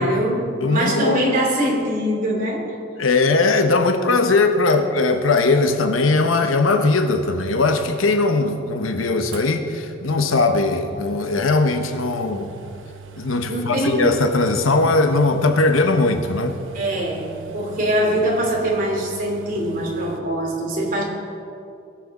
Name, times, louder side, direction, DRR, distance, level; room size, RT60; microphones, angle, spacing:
voice 1, 0.0-2.7 13.5-14.3 16.7-21.0, right 1 dB, 45° right, -2 dB, 2.8 m, -23 dB
voice 2, 0.6-1.2 3.0-12.5 13.2-16.6, left 3 dB, 85° left, 6 dB, 0.9 m, -19 dB
sound 1, 9.3-20.2, right 6 dB, 70° right, 0.9 m, -42 dB
20.5 x 7.5 x 4.1 m, 2.5 s
head